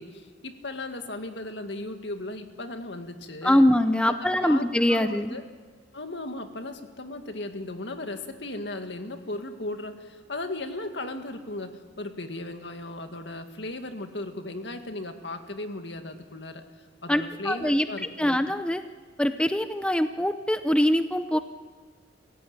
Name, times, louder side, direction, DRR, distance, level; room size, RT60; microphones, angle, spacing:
voice 1, 0.0-3.6 4.0-4.1 4.4-5.4 5.9-16.6 17.0-18.4, left 2 dB, 70° left, 6 dB, 2.1 m, -36 dB
voice 2, 3.4-5.3 17.1-17.9 18.2-18.8 19.2-21.4, left 1 dB, 5° left, 9 dB, 0.6 m, -23 dB
28.0 x 16.5 x 8.9 m, 1.4 s
head